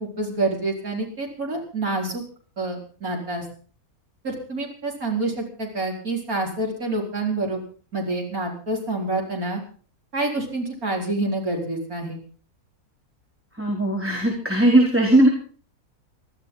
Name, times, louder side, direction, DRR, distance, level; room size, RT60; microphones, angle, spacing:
voice 1, 0.0-2.2 2.6-3.4 4.2-7.6 7.9-9.6 10.1-12.2, right 2 dB, 70° right, 0 dB, 5.5 m, -27 dB
voice 2, 13.5-15.3, right 1 dB, 10° right, -1 dB, 4.1 m, -18 dB
23.5 x 14.0 x 4.1 m, 0.43 s
omnidirectional pair, 1.6 m